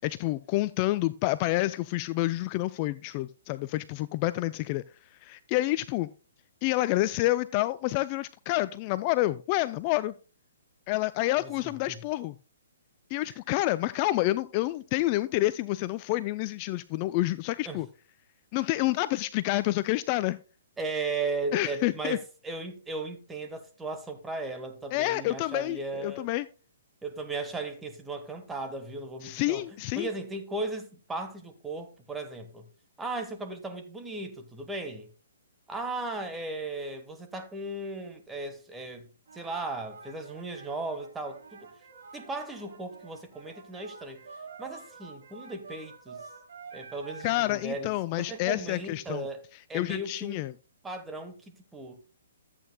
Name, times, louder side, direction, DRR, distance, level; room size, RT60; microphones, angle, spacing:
voice 1, 0.0-4.8 5.2-6.1 6.6-10.1 10.9-12.4 13.1-17.9 18.5-20.4 21.5-22.2 24.9-26.5 29.2-30.1 47.2-49.3 49.7-50.5, left 17 dB, 35° left, 0.3 m, -28 dB
voice 2, 11.4-12.0 13.3-13.4 17.6-17.8 20.8-26.3 27.0-29.7 30.0-32.7 33.0-35.1 35.7-41.7 42.1-44.2 44.6-46.2 46.7-49.4 49.7-50.4 50.8-52.0, right 2 dB, 10° right, 1.3 m, -36 dB
sound 1, 39.3-47.3, right 4 dB, 65° right, 3.0 m, -48 dB
13.5 x 8.4 x 2.2 m
hypercardioid pair, 140°, 0 cm